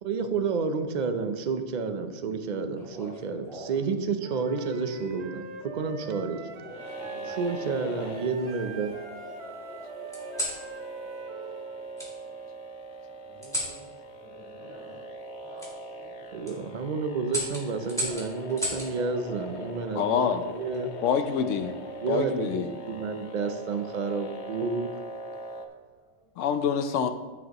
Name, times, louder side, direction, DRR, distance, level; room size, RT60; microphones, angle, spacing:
voice 1, 0.0-6.5 7.2-8.9 16.3-21.0 22.0-24.9, right 4 dB, 45° right, 8 dB, 0.7 m, -30 dB
sound 1, 2.8-3.9 4.9-5.3 6.6-7.4 8.0-8.9 10.1-10.6 12.0-12.1 13.4-13.8 15.6-15.7 16.3-16.5 17.3-18.9 20.4-20.8, equal, 5° left, 2.3 m, -36 dB
voice 2, 3.2-3.6 10.7-10.8 13.3-13.9 14.2-15.1 15.4-16.7 22.8-23.3 24.1-24.2 25.7-26.2, right 1 dB, 20° left, -11 dB, 2.6 m, -53 dB
Wind instrument woodwind instrument, 4.2-11.7, right 4 dB, 65° right, 1.2 m, -44 dB
sound 2, 6.7-25.7, right 1 dB, 65° left, 1.2 m, -41 dB
voice 3, 19.9-20.4 21.0-21.8 22.1-22.7 26.4-27.1, left 7 dB, 85° left, 9 dB, 1.0 m, -26 dB
14.5 x 6.2 x 3.0 m, 1.3 s
omnidirectional pair, 1.2 m